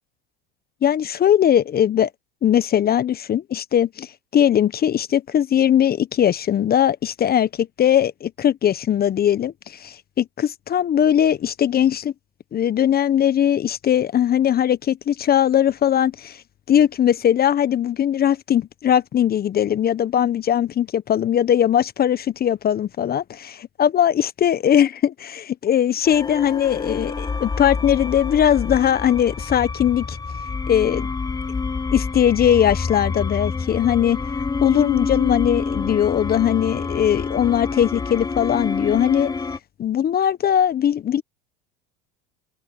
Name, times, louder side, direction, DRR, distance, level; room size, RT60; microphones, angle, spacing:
voice 1, 0.8-2.1 2.4-12.1 12.5-16.4 16.7-30.2 30.7-31.1 31.9-34.2 34.6-39.3 39.8-41.2, left 10 dB, 30° left, 1.2 m, -20 dB
sound 1, 26.0-39.6, left 4 dB, 15° left, 0.9 m, -27 dB
hypercardioid pair, 85°, 29 cm